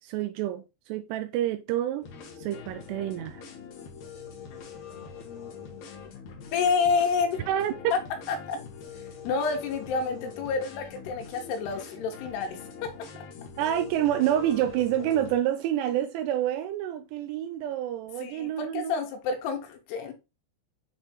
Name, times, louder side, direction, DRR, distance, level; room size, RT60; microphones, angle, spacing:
voice 1, 0.0-2.1 2.4-3.4 7.5-7.7 13.6-19.0, right 11 dB, 85° right, 2.7 m, -28 dB
sound 1, 2.0-15.4, left 6 dB, 60° left, 2.1 m, -43 dB
voice 2, 6.5-7.4 7.9-8.0 8.3-8.6 9.2-12.9 18.2-20.1, left 5 dB, 80° left, 3.1 m, -28 dB
7.5 x 3.5 x 4.3 m
omnidirectional pair, 4.8 m